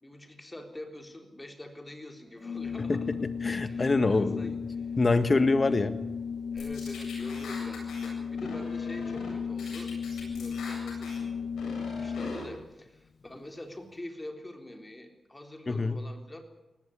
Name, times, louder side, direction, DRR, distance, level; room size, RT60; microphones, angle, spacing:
voice 1, 0.0-3.1 3.7-5.0 6.5-9.9 10.2-11.3 11.6-16.4, left 1 dB, 20° left, 4 dB, 3.8 m, -45 dB
Organ, 2.4-12.7, left 6 dB, 60° left, 0.7 m, -35 dB
voice 2, 2.9-4.5 5.0-5.9 15.7-16.0, left 3 dB, 40° left, 11 dB, 1.6 m, -25 dB
sound 1, 6.6-8.1 8.4-9.3 9.6-11.2 11.6-12.4, left 3 dB, 85° left, 7.8 m, -42 dB
18.5 x 15.5 x 9.8 m, 1.0 s
cardioid pair, 50°, 0 cm